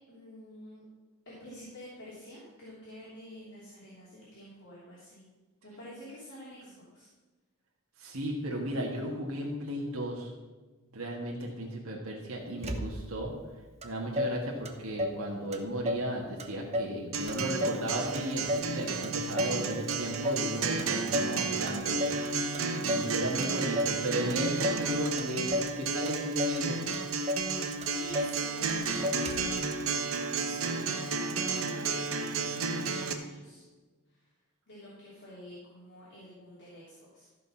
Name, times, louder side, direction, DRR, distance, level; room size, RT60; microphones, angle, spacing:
voice 1, 0.1-0.8 1.2-5.2 5.6-7.1 28.0-29.2 30.4-33.7 34.1-34.3 34.7-37.3, left 1 dB, 55° left, -9 dB, 3.1 m, -49 dB
voice 2, 8.0-10.3 10.9-13.3 13.8-22.0 22.7-25.5 25.8-26.9, right 1 dB, 85° right, -1 dB, 1.6 m, -35 dB
Motor vehicle (road), 12.6-13.3 13.8-13.9 14.2-15.2 15.5-16.1 16.4-17.0 17.3-18.7 19.0-19.6 19.9-20.5 20.8-21.4 21.7-22.3 22.5-23.1 23.4-24.0 24.3-24.9 25.2-25.8 26.1-26.6 26.9-27.0 27.3-27.5 27.8-28.4 28.7-28.8 29.0-29.6, left 1 dB, 30° right, 0.9 m, -33 dB
Acoustic guitar, 17.1-33.1, right 4 dB, 70° right, 0.9 m, -32 dB
14.0 x 5.2 x 5.7 m, 1.3 s
head